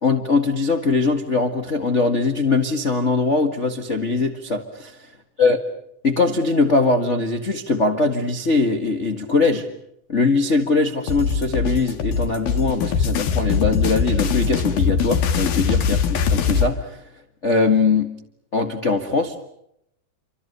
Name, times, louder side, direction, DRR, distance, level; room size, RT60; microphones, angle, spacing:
voice 1, 0.0-5.0 5.4-5.6 6.0-9.6 10.1-17.0 17.4-18.1 18.5-19.4, left 3 dB, 30° left, 3 dB, 1.3 m, -21 dB
sound 1, 11.1-16.7, left 6 dB, 90° left, 3.6 m, -21 dB
29.0 x 25.5 x 6.8 m, 0.76 s
omnidirectional pair, 4.0 m